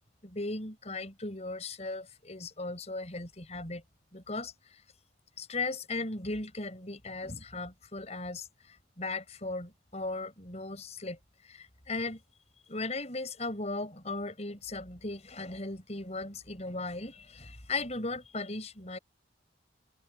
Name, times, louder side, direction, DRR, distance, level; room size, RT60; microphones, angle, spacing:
voice 1, 0.2-3.8 4.1-4.5 5.4-11.2 11.4-12.2 12.7-19.0, left 3 dB, 35° left, 6.4 m, -37 dB
open air
head